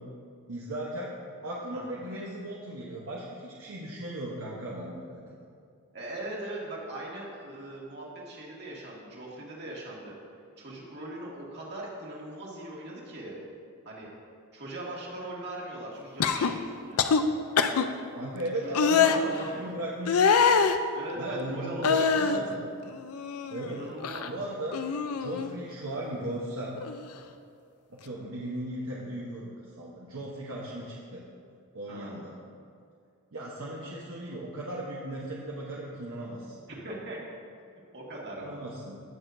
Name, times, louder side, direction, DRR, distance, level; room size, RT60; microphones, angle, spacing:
voice 1, 0.5-1.1 1.4-5.2 18.1-20.2 21.1-22.6 23.5-23.8 24.2-24.8 25.2-26.8 27.9-29.5 29.8-31.2 31.7-32.3 33.3-36.6 38.4-39.0, right 1 dB, 65° right, -5 dB, 1.0 m, -36 dB
voice 2, 5.9-10.2 10.6-13.4 13.9-14.1 14.5-17.0 18.6-18.7 19.0-19.8 20.9-22.5 23.7-24.3 31.9-32.2 36.7-37.2 37.9-38.6, right 1 dB, 50° right, -4 dB, 2.0 m, -40 dB
sound 1, 16.2-16.5 17.0-17.2 17.6-17.9 18.7-19.2 20.1-20.8 21.8-22.4 22.9-23.7 24.0-24.3 24.7-25.5 26.8-27.0, left 6 dB, 70° left, 0.5 m, -24 dB
17.5 x 6.5 x 2.7 m, 2.3 s
head